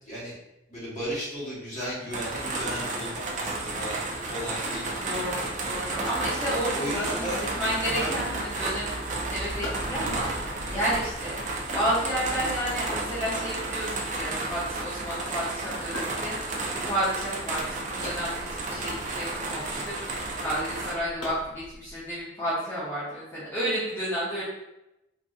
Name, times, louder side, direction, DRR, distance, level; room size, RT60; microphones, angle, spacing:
voice 1, 0.0-0.4 0.7-4.9 6.7-7.4 7.9-8.1, equal, 35° left, -8 dB, 1.3 m, -35 dB
sound 1, 2.1-20.9, right 2 dB, 35° right, 0.4 m, -32 dB
voice 2, 4.9-24.4, equal, 10° left, -11 dB, 0.7 m, -31 dB
sound 2, 7.0-22.2, equal, 90° left, 1.3 m, -45 dB
3.7 x 2.5 x 2.4 m, 0.92 s
head